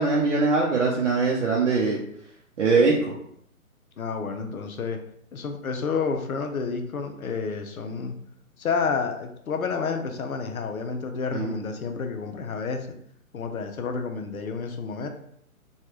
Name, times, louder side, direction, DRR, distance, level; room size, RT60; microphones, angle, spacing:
voice 1, 0.0-2.0 2.6-3.1 11.3-11.5, right 4 dB, 55° right, -3 dB, 0.6 m, -22 dB
voice 2, 4.0-5.0 5.3-8.1 8.6-12.9 13.3-15.1, left 5 dB, 75° left, 5 dB, 0.7 m, -30 dB
3.3 x 2.3 x 2.9 m, 0.68 s
figure-of-eight pair, 140°, 44 cm